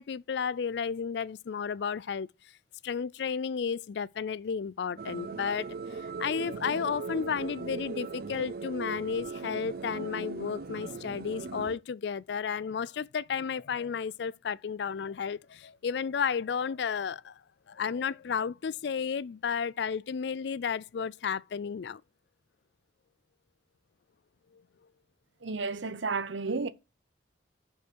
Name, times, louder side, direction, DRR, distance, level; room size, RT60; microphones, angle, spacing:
voice 1, 0.0-2.3 2.8-5.7 6.2-17.3 17.7-22.0, left 6 dB, 65° left, 0.4 m, -32 dB
sound 1, 5.0-11.8, right 4 dB, 55° right, 0.5 m, -39 dB
voice 2, 25.4-26.7, right 4 dB, 85° right, 0.9 m, -32 dB
6.6 x 5.4 x 6.2 m
head